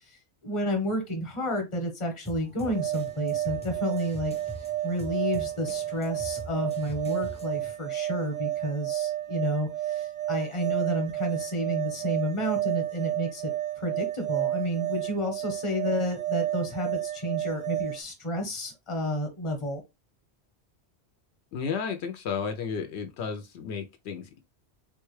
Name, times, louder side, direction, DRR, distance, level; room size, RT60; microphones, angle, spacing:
voice 1, 0.4-4.3 4.8-13.5 13.8-19.8, equal, 30° left, 0.9 m, -31 dB
sound 1, 2.2-7.7, right 1 dB, 10° left, 0.5 m, -44 dB
sound 2, 2.6-18.0, right 13 dB, 55° right, 0.5 m, -31 dB
voice 2, 21.5-24.4, left 6 dB, 75° left, 0.8 m, -33 dB
3.7 x 2.2 x 3.1 m
omnidirectional pair, 1.1 m